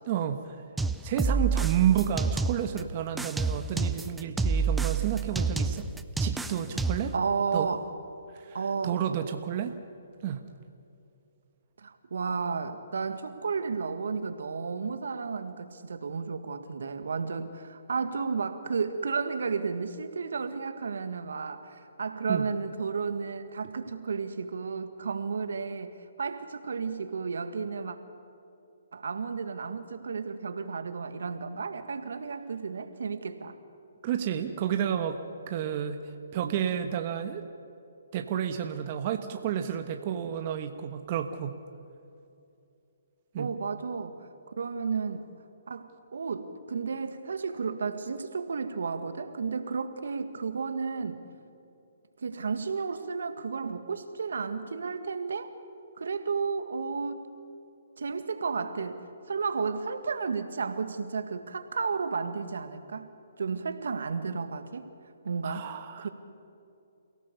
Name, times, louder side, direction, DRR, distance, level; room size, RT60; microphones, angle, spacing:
voice 1, 0.1-0.6 1.0-5.9 6.2-7.1 7.5-7.7 8.3-8.6 8.8-9.7 10.2-10.4 22.3-22.4 34.0-35.2 35.5-36.0 36.3-37.5 38.1-41.6 43.3-43.5 65.4-66.1, right 9 dB, 40° right, 6 dB, 1.3 m, -30 dB
sound 1, 0.8-2.8 3.2-7.2, right 4 dB, 5° right, 0.6 m, -28 dB
voice 2, 7.1-7.9 8.5-9.0 11.8-25.9 26.2-28.0 28.9-33.6 43.4-44.3 44.6-45.2 45.7-51.2 52.2-55.5 56.0-57.3 58.0-63.1 63.4-64.9 65.2-65.7 66.0-66.1, right 5 dB, 75° right, 9 dB, 1.8 m, -32 dB
28.5 x 17.0 x 6.9 m, 2.7 s
hypercardioid pair, 150°, 0 cm